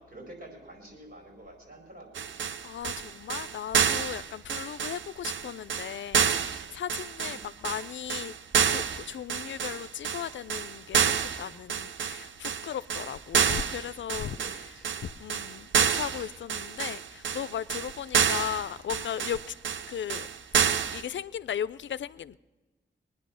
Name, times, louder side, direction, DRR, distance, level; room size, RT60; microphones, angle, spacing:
voice 1, 0.0-2.2 7.2-7.4 14.3-15.0, right 1 dB, 55° right, 5.1 m, -48 dB
sound 1, 2.1-21.0, right 7 dB, 85° right, 0.6 m, -28 dB
voice 2, 2.6-8.3 8.6-19.5 19.9-20.3 20.9-22.4, left 9 dB, 80° left, 0.4 m, -37 dB
21.0 x 9.8 x 6.2 m
cardioid pair, 60°, 19 cm